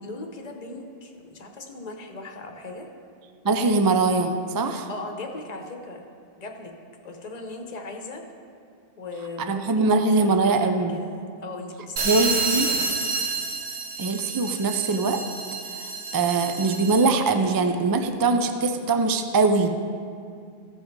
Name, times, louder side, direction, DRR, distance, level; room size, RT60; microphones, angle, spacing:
voice 1, 0.0-2.9 4.9-6.0 6.4-6.7 7.0-8.2 9.0-9.8 10.2-11.1 11.4-12.8, left 2 dB, 40° left, 3 dB, 1.0 m, -38 dB
voice 2, 3.4-4.9 9.5-11.0 12.0-12.7 14.0-15.2 15.8-19.7, right 3 dB, 35° right, 7 dB, 0.3 m, -22 dB
sound 1, 12.0-17.2, right 4 dB, 70° right, 1.3 m, -29 dB
14.5 x 5.4 x 4.7 m, 2.3 s
omnidirectional pair, 1.1 m